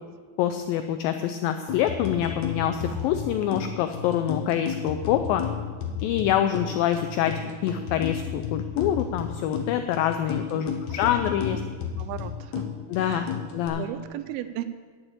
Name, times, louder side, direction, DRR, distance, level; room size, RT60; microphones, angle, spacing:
voice 1, 0.4-5.4 6.0-11.6 12.9-13.3 13.5-13.9, left 10 dB, 85° left, 8 dB, 2.1 m, -26 dB
sound 1, 1.7-13.7, left 8 dB, 65° left, 2.0 m, -33 dB
sound 2, 1.8-3.8, left 1 dB, 30° left, 1.4 m, -49 dB
voice 2, 12.0-12.7 13.0-13.4 13.7-14.6, right 13 dB, 85° right, 11 dB, 2.4 m, -36 dB
10.0 x 7.1 x 8.2 m, 1.5 s
omnidirectional pair, 4.5 m